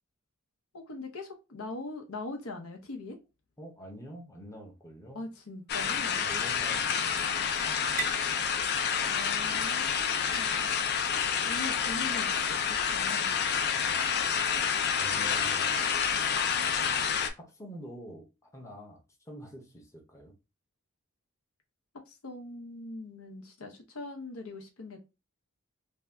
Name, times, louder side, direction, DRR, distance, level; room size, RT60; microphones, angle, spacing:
voice 1, 0.7-3.2 5.1-6.4 9.1-10.6 11.4-13.4 22.1-25.0, left 2 dB, 75° left, 0.7 m, -42 dB
voice 2, 3.6-5.3 6.2-8.2 13.8-14.0 15.0-15.8 17.4-20.3, right 1 dB, 15° left, 0.7 m, -47 dB
sound 1, 4.7-12.2, right 8 dB, 40° right, 0.5 m, -47 dB
sound 2, 5.7-17.3, left 7 dB, 50° left, 0.4 m, -29 dB
2.6 x 2.2 x 3.3 m
head